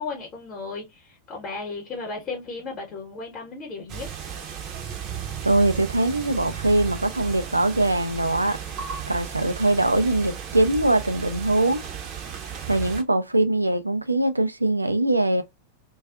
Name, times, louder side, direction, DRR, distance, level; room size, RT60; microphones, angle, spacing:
voice 1, 0.0-4.1, left 4 dB, 30° left, 0.9 m, -35 dB
sound 1, 3.9-13.0, right 8 dB, 35° right, 0.6 m, -35 dB
voice 2, 5.4-8.6 9.1-11.8 12.7-15.4, right 2 dB, 85° right, 0.3 m, -22 dB
2.4 x 2.2 x 2.3 m
figure-of-eight pair, 90°, 0 cm